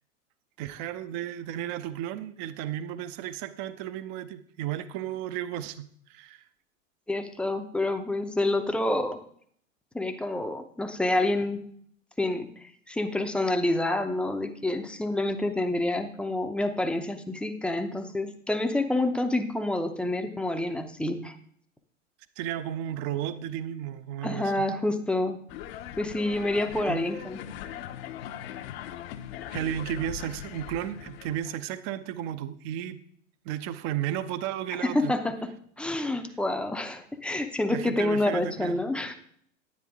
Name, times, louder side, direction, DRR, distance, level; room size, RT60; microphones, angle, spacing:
voice 1, 0.6-6.4 22.4-24.7 26.9-27.1 29.5-33.0 33.4-35.1 37.7-38.8, right 11 dB, 35° right, 13 dB, 0.7 m, -34 dB
voice 2, 7.1-9.2 9.9-11.7 12.2-21.4 24.2-25.4 26.0-27.4 34.8-35.5 35.8-39.1, left 2 dB, 5° left, 6 dB, 0.6 m, -28 dB
sound 1, 25.5-31.6, left 11 dB, 50° left, 0.8 m, -40 dB
9.9 x 9.6 x 3.6 m, 0.63 s
hypercardioid pair, 100°, 39 cm